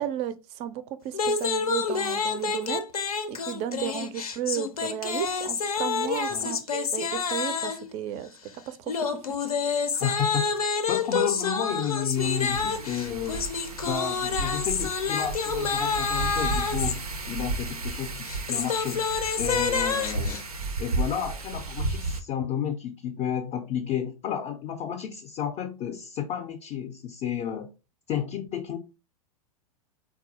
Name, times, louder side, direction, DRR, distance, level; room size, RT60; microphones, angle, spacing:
voice 1, 0.0-2.8 3.3-8.3 8.7-8.8 9.1-10.0, right 10 dB, 35° right, 0.4 m, -34 dB
sound 1, 1.1-7.9 8.9-17.0 18.2-20.4, left 5 dB, 85° left, 0.5 m, -28 dB
voice 2, 10.0-10.5 10.9-19.1 19.4-20.4 20.8-27.7 28.1-28.8, left 9 dB, 30° left, 0.4 m, -31 dB
Wind, 12.1-22.2, right 3 dB, 90° right, 0.5 m, -33 dB
3.8 x 2.2 x 2.7 m
figure-of-eight pair, 100°, 18 cm